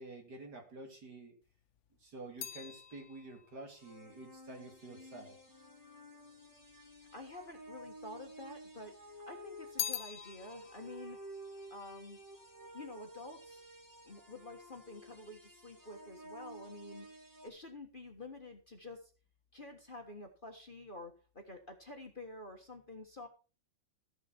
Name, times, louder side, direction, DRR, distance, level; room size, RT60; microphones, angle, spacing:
voice 1, 0.0-1.4 2.0-5.3, right 2 dB, 60° right, 3 dB, 3.0 m, -49 dB
sound 1, 1.4-5.9 6.6-7.4 7.7-8.9 9.2-12.7 13.0-13.5, left 9 dB, 55° left, 0.8 m, -45 dB
sound 2, 3.8-17.5, right 1 dB, 10° right, 1.9 m, -52 dB
voice 2, 7.1-11.2 11.7-12.2 12.7-13.6 14.0-17.1 17.4-19.1 19.5-23.3, left 2 dB, 30° left, 3 dB, 1.5 m, -49 dB
14.5 x 7.5 x 4.6 m, 0.33 s
omnidirectional pair, 2.0 m